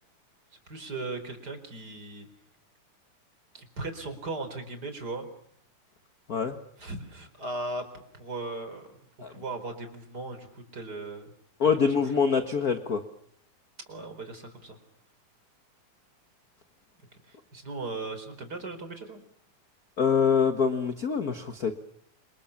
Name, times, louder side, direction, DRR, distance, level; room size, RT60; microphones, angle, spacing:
voice 1, 0.7-2.3 3.5-5.3 6.8-7.9 8.1-9.0 9.3-11.3 11.6-12.2 13.9-14.8 17.2-19.2, right 2 dB, 30° right, 8 dB, 4.7 m, -38 dB
voice 2, 11.6-13.0 20.0-21.7, left 6 dB, 45° left, 8 dB, 1.3 m, -25 dB
29.0 x 27.0 x 7.2 m, 0.66 s
omnidirectional pair, 3.6 m